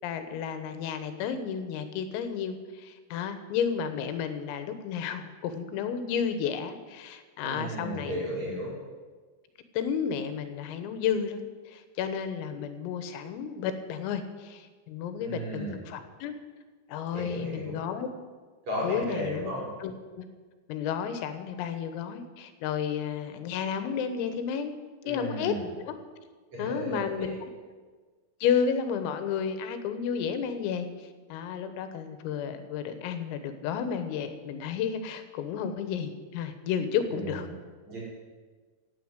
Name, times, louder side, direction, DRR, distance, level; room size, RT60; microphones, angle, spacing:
voice 1, 0.0-8.2 8.5-8.6 9.8-16.3 16.9-18.1 18.8-19.5 19.8-20.3 20.7-24.8 25.1-26.0 26.6-27.4 28.4-30.9 31.3-37.5, left 7 dB, 90° left, 9 dB, 3.9 m, -32 dB
voice 2, 7.4-8.7 15.2-15.8 17.1-17.8 18.7-19.7 25.0-25.6 26.5-27.4 37.1-37.4 37.8-38.0, right 1 dB, 35° right, -5 dB, 6.2 m, -34 dB
17.0 x 9.5 x 8.1 m, 1.4 s
omnidirectional pair, 5.9 m